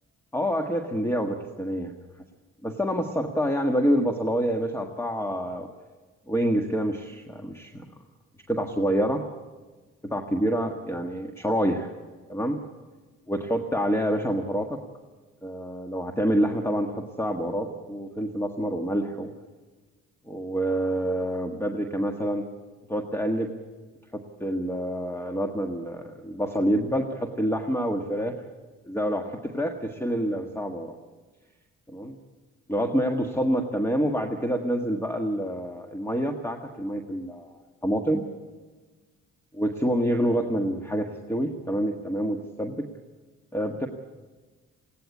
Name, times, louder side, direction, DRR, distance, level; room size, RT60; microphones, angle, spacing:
voice 1, 0.3-1.9 2.6-5.7 6.3-7.8 8.5-9.2 10.0-11.9 12.3-12.6 13.3-14.8 15.4-19.3 20.3-22.5 22.9-23.5 24.1-28.3 28.9-30.9 31.9-32.2 32.7-38.2 39.5-42.9 43.5-43.9, equal, 10° left, 5 dB, 1.6 m, -27 dB
20.5 x 17.0 x 8.5 m, 1.3 s
cardioid pair, 90°, 30 cm